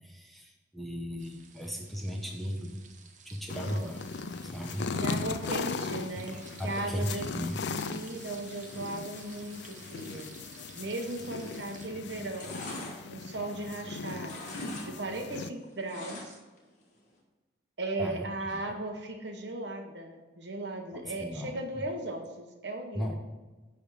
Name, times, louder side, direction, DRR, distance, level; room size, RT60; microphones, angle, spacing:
voice 1, 0.0-2.8 3.2-4.0 4.4-5.2 6.3-7.6 8.1-8.2 18.0-18.7 20.9-21.6 22.9-23.2, equal, ahead, 1 dB, 0.8 m, -37 dB
sound 1, 1.2-11.9, right 6 dB, 40° right, 0.7 m, -53 dB
sound 2, 3.5-15.5, left 4 dB, 65° left, 0.4 m, -38 dB
voice 2, 3.5-3.9 4.9-6.4 6.6-7.3 7.7-10.3 10.7-12.5 13.1-14.3 14.8-16.4 17.8-23.2, right 2 dB, 65° right, 3 dB, 1.1 m, -37 dB
sound 3, 12.2-13.9 14.2-14.9 15.2-16.6 16.9-17.0, left 1 dB, 40° left, 1.5 m, -42 dB
10.0 x 3.6 x 6.3 m, 1.2 s
head